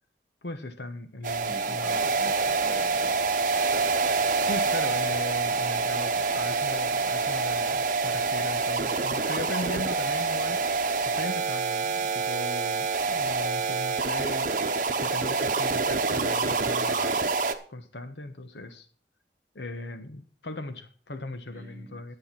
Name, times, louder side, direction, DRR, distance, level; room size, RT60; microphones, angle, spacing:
voice 1, 0.4-2.1 4.4-17.2 17.7-18.9 19.5-22.2, left 2 dB, 80° left, 1.1 m, -38 dB
sound 1, 1.2-17.5, right 4 dB, 45° right, 0.8 m, -26 dB
voice 2, 1.4-3.1 21.5-22.2, right 1 dB, 20° left, 4.8 m, -45 dB
10.5 x 8.0 x 5.8 m
head